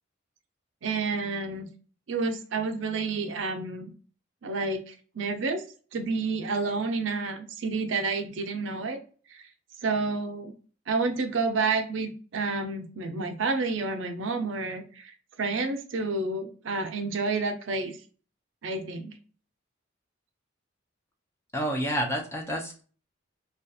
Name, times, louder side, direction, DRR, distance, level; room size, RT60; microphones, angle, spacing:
voice 1, 0.8-1.7 2.1-3.9 4.4-5.6 5.9-9.0 9.8-10.5 10.9-15.1 15.4-17.9 18.6-19.1, right 3 dB, 75° right, 6 dB, 0.5 m, -29 dB
voice 2, 21.5-22.8, equal, 15° left, 1 dB, 0.5 m, -29 dB
2.3 x 2.2 x 2.6 m, 0.39 s
head